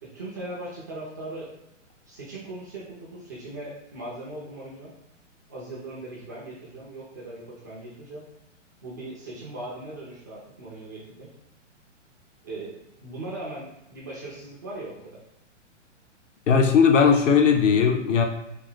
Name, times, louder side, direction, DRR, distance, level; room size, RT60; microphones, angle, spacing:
voice 1, 0.0-1.5 2.1-4.9 5.5-8.2 8.8-11.3 12.4-15.0, right 2 dB, 15° right, -5 dB, 0.3 m, -39 dB
voice 2, 16.5-18.2, left 6 dB, 75° left, 4 dB, 0.8 m, -18 dB
3.4 x 2.5 x 3.6 m, 0.84 s
hypercardioid pair, 135°, 37 cm